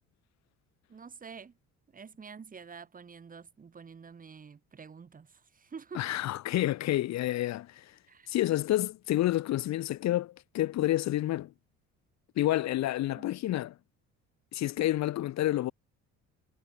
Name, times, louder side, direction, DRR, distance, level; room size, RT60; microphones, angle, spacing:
voice 1, 0.9-1.6 1.9-6.0 8.1-8.3 13.1-13.3, right 6 dB, 25° right, 5.1 m, -48 dB
voice 2, 5.9-7.9 8.3-11.5 12.4-13.7 14.5-15.7, left 14 dB, 60° left, 1.2 m, -29 dB
cardioid pair, 145°, 30 cm